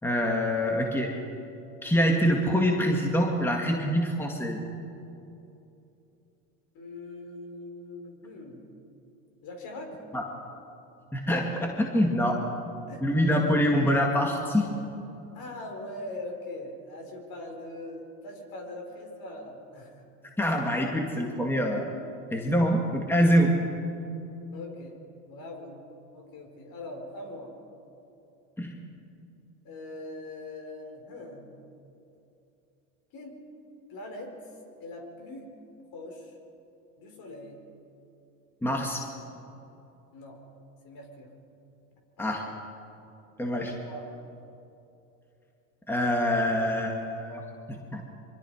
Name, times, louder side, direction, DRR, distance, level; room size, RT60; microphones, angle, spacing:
voice 1, 0.0-1.1 1.8-4.6 10.1-10.2 11.1-12.3 13.0-14.7 20.4-21.9 22.3-23.6 28.6-28.7 38.6-39.0 42.2-42.4 43.4-43.7 45.9-47.4 47.7-48.1, equal, 5° left, 1 dB, 2.1 m, -25 dB
voice 2, 6.7-8.6 9.4-10.0 12.9-13.2 15.3-20.0 24.5-25.0 25.3-25.8 26.1-27.5 29.6-31.5 33.1-33.4 33.9-34.3 34.8-35.5 35.9-36.3 37.0-37.6 40.1-40.4 40.8-41.3 42.2-42.3 43.8-44.0, left 2 dB, 50° left, 2 dB, 5.2 m, -41 dB
24.5 x 24.0 x 5.0 m, 2.8 s
supercardioid pair, 105°, 44 cm